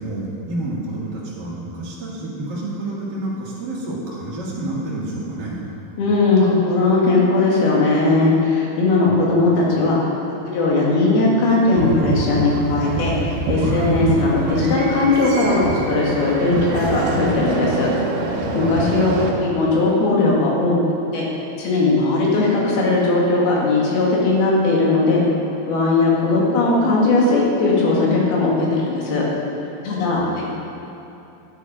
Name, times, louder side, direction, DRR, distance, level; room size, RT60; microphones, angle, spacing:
voice 1, 0.0-5.6 9.1-9.2 18.7-19.1 30.1-30.4, right 2 dB, 40° right, -7 dB, 1.6 m, -29 dB
voice 2, 6.0-10.0 10.4-17.9 18.5-19.1 19.4-20.8 21.1-21.3 21.6-25.2 25.7-29.2 29.8-30.4, left 3 dB, 75° left, -4 dB, 3.8 m, -18 dB
sound 1, 11.8-19.3, right 3 dB, 70° right, 2.5 m, -25 dB
12.0 x 9.2 x 4.9 m, 2.8 s
omnidirectional pair, 4.5 m